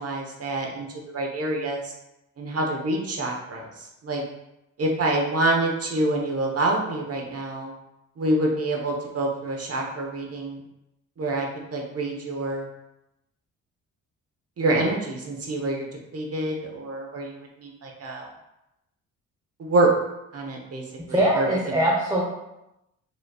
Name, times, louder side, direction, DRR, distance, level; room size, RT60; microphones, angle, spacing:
voice 1, 0.0-1.9 2.4-4.2 4.8-7.7 8.2-10.6 11.2-12.6 14.6-15.9 16.1-18.3 19.6-19.9 20.3-21.8, right 2 dB, 45° right, 0 dB, 1.1 m, -27 dB
voice 2, 21.1-22.2, right 1 dB, 10° right, -3 dB, 0.8 m, -22 dB
5.2 x 3.1 x 2.4 m, 0.90 s
cardioid pair, 75°, 33 cm